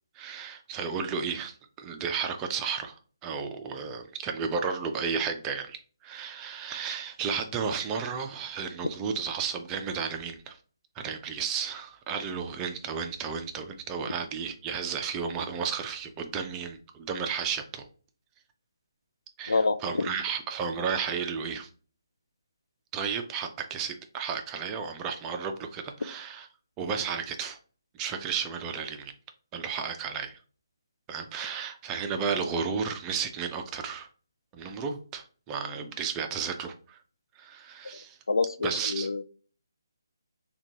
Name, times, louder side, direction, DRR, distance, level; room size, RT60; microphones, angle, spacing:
voice 1, 0.1-10.6 11.0-17.9 19.4-21.7 22.9-26.5 26.8-27.6 27.9-29.1 29.5-30.4 31.1-34.1 34.5-37.0 37.4-38.2 38.6-39.1, right 6 dB, 15° right, 0.4 m, -33 dB
voice 2, 19.5-20.1 38.3-39.2, left 3 dB, 85° left, 0.4 m, -27 dB
5.6 x 2.3 x 2.8 m
figure-of-eight pair, 155°, 2 cm